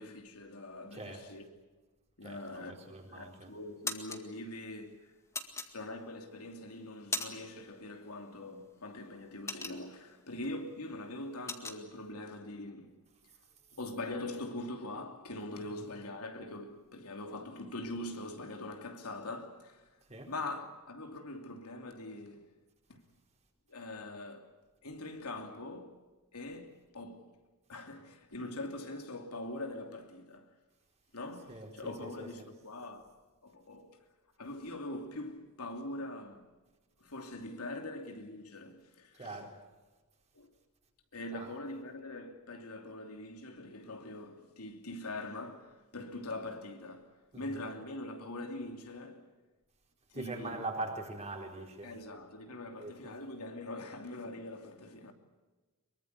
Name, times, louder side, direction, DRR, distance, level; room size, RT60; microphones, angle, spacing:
voice 1, 0.0-1.4 2.2-5.1 5.7-13.0 13.7-19.8 20.2-22.5 22.9-23.0 23.7-24.5 24.8-26.0 26.3-27.2 27.7-30.5 31.1-33.1 33.4-34.0 34.4-36.5 37.0-39.5 40.3-40.5 41.1-49.3 50.1-50.6 51.8-55.1, left 2 dB, 80° left, 2.9 m, -43 dB
voice 2, 0.9-1.3 2.2-3.5 15.6-15.9 20.1-20.3 31.5-32.3 39.2-39.6 41.3-41.5 47.3-47.6 50.1-52.0 52.8-53.1, right 2 dB, 30° right, 4.4 m, -42 dB
sound 1, 2.8-3.2 3.6-4.2 5.3-6.2 6.7-7.6 7.9-8.1 8.5-10.2 10.6-10.8 11.0-11.8, left 3 dB, 15° left, 1.9 m, -38 dB
24.0 x 23.0 x 8.2 m
head